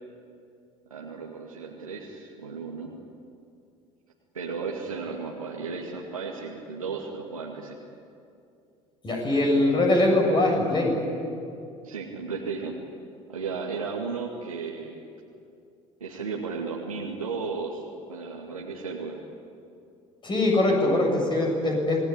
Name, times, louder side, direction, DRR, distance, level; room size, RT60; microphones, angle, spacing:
voice 1, 0.9-2.9 4.3-7.8 11.8-12.8 13.3-15.0 16.0-17.8 18.1-19.2 20.8-21.3, right 5 dB, 85° right, -2 dB, 2.2 m, -34 dB
voice 2, 9.0-10.9 20.2-22.0, left 2 dB, 25° left, 0 dB, 7.7 m, -22 dB
27.0 x 19.0 x 9.9 m, 2.5 s
figure-of-eight pair, 65°, 17 cm